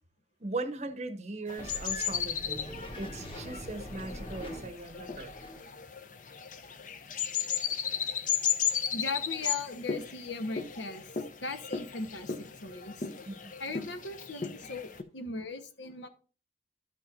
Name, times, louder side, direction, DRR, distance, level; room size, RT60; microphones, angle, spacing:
voice 1, 0.4-5.3 13.3-13.5, right 2 dB, 35° right, 0.8 m, -39 dB
sound 1, 1.5-15.0, left 7 dB, 45° left, 0.6 m, -35 dB
sound 2, 1.6-5.6, equal, 30° left, 1.5 m, -43 dB
voice 2, 8.9-11.0 11.4-13.1 13.6-16.1, left 3 dB, 75° left, 1.1 m, -38 dB
12.5 x 5.7 x 2.5 m
head